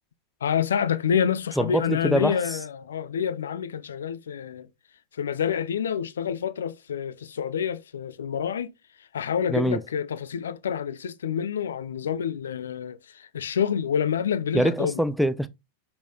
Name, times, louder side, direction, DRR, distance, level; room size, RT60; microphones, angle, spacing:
voice 1, 0.4-4.7 5.1-8.7 9.1-15.0, left 8 dB, 65° left, 0.7 m, -28 dB
voice 2, 1.6-2.6 9.5-9.8 14.5-15.5, equal, ahead, 0.5 m, -24 dB
6.1 x 5.8 x 3.9 m
figure-of-eight pair, 90°, 0 cm